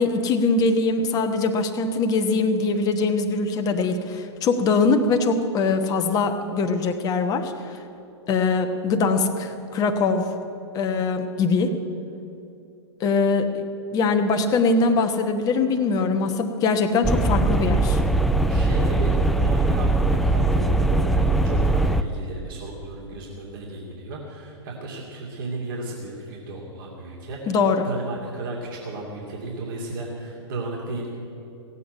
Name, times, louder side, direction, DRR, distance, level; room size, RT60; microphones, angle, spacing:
voice 1, 0.0-7.5 8.3-10.3 10.7-11.7 13.0-13.6 13.9-18.0 27.5-27.9, left 4 dB, 25° left, 6 dB, 1.1 m, -22 dB
sound 1, 17.0-22.0, right 2 dB, ahead, 0.4 m, -21 dB
voice 2, 18.5-31.1, right 2 dB, 50° right, -2 dB, 2.6 m, -34 dB
17.0 x 8.3 x 8.8 m, 2.7 s
figure-of-eight pair, 105°, 15 cm